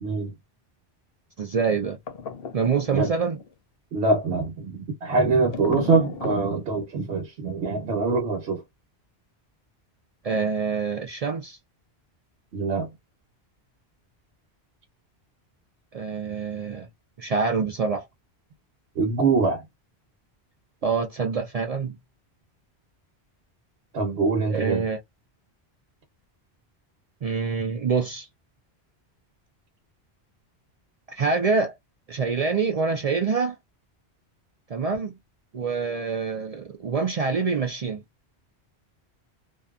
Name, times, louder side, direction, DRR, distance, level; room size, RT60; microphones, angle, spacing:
voice 1, 0.0-0.3 2.9-3.1 3.9-8.6 12.5-12.9 19.0-19.6 23.9-24.8, right 4 dB, 75° right, 1.1 m, -24 dB
voice 2, 1.4-2.0 2.5-3.4 10.2-11.6 15.9-16.9 17.2-18.1 20.8-22.0 24.5-25.0 27.2-28.3 31.1-31.7 32.1-33.6 34.7-35.1 35.5-38.0, right 5 dB, 55° right, 0.4 m, -26 dB
sound 1, 2.1-3.5 5.5-6.5, left 5 dB, 70° left, 0.8 m, -35 dB
2.7 x 2.3 x 2.3 m
omnidirectional pair, 1.1 m